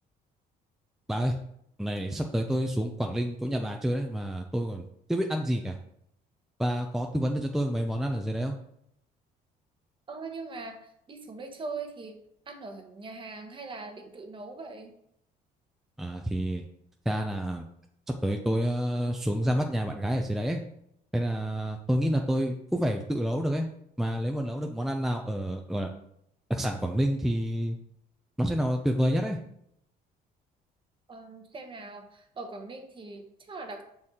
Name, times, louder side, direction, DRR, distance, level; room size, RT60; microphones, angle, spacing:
voice 1, 1.8-4.8 5.1-5.8 6.6-8.6 16.0-16.6 17.1-17.6 18.2-20.6 21.1-23.7 24.0-25.9 26.5-27.8 28.4-29.4, equal, ahead, 3 dB, 0.4 m, -28 dB
voice 2, 10.1-12.2 12.5-15.0 31.1-33.8, right 3 dB, 30° right, 5 dB, 1.0 m, -41 dB
6.3 x 4.2 x 3.7 m, 0.74 s
cardioid pair, 110°, 17 cm